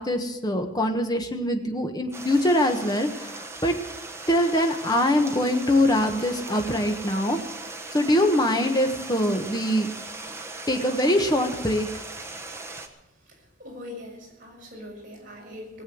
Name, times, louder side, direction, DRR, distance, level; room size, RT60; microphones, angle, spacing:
voice 1, 0.0-3.7 4.3-7.4 7.9-9.9 10.7-11.9, left 1 dB, 20° left, 4 dB, 1.4 m, -23 dB
Stream, 2.1-12.9, right 3 dB, 15° right, 1.1 m, -39 dB
voice 2, 13.3-15.8, left 1 dB, 45° right, -2 dB, 5.2 m, -42 dB
18.5 x 8.1 x 7.9 m, 0.91 s
head